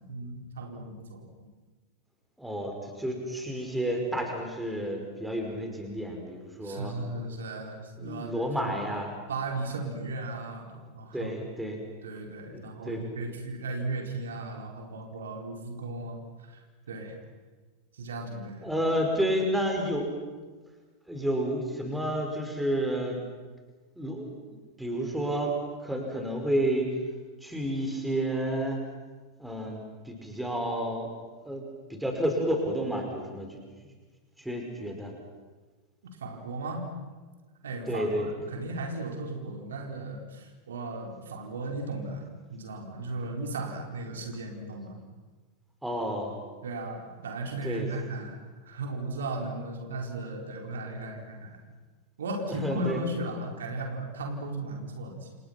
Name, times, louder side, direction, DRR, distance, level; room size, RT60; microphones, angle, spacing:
voice 1, 0.1-1.3 6.6-8.4 9.3-11.3 12.0-17.2 17.9-18.7 36.2-36.9 37.6-45.0 46.6-48.4 48.6-51.6 52.2-55.4, right 2 dB, 65° right, 2 dB, 4.6 m, -36 dB
voice 2, 2.4-6.9 8.0-9.1 11.1-11.8 12.5-13.0 18.6-20.2 21.1-23.2 24.0-24.3 24.8-25.6 25.8-27.0 27.4-28.8 29.4-31.1 31.5-33.9 34.4-35.1 37.9-38.3 45.8-46.4 47.6-47.9 50.5-51.2 52.5-53.0, equal, 5° right, 2 dB, 5.3 m, -31 dB
29.0 x 29.0 x 6.0 m, 1.3 s
figure-of-eight pair, 90°, 0 cm